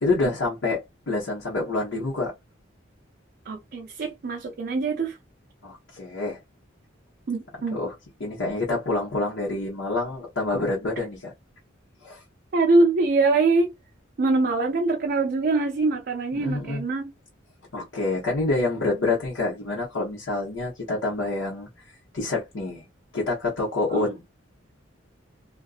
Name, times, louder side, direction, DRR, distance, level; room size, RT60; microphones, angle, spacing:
voice 1, 0.0-2.3 5.6-6.4 7.7-7.9 8.2-11.3 12.0-12.2 16.3-16.8 17.7-21.7 22.1-22.9 23.1-24.2, left 2 dB, 85° left, 0.9 m, -27 dB
voice 2, 3.5-5.2 7.3-7.8 12.5-13.7 14.2-17.1 23.9-24.0, right 3 dB, 50° right, 0.4 m, -23 dB
2.5 x 2.2 x 2.3 m
head